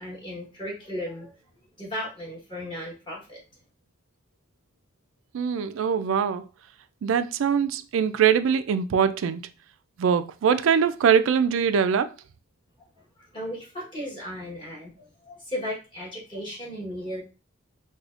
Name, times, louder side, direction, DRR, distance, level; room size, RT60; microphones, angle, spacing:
voice 1, 0.0-1.4 1.8-3.4 13.2-17.2, equal, 25° left, 1.2 m, -35 dB
voice 2, 5.3-6.4 7.0-9.4 10.0-12.1, right 7 dB, 85° right, 0.3 m, -22 dB
4.9 x 2.3 x 2.4 m
head